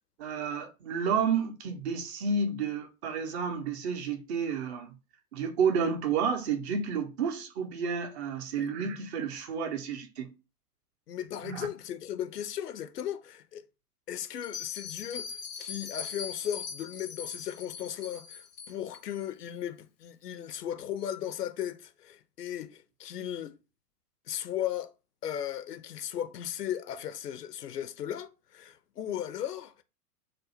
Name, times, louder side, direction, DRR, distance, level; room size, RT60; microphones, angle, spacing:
voice 1, 0.2-4.9 5.3-10.3 11.4-11.7, right 6 dB, 45° right, 0.7 m, -31 dB
voice 2, 11.1-13.6 14.1-23.6 24.3-24.9 25.2-29.8, left 10 dB, 85° left, 0.5 m, -36 dB
Bell, 14.4-19.0, left 7 dB, 30° left, 0.4 m, -41 dB
2.5 x 2.1 x 2.8 m
figure-of-eight pair, 105°, 46 cm